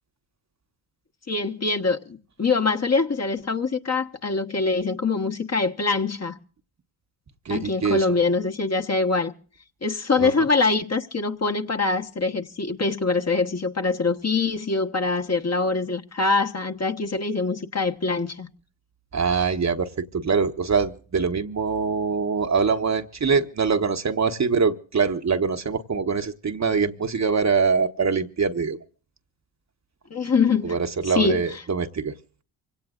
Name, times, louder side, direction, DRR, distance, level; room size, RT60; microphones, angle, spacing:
voice 1, 1.3-6.4 7.5-9.3 9.8-18.5 30.1-30.7 31.1-31.4, left 4 dB, 30° left, 1.3 m, -24 dB
voice 2, 7.4-8.1 10.2-10.5 19.1-28.8 30.6-32.1, right 5 dB, 35° right, 1.2 m, -24 dB
25.5 x 17.5 x 2.5 m
hypercardioid pair, 50°, 49 cm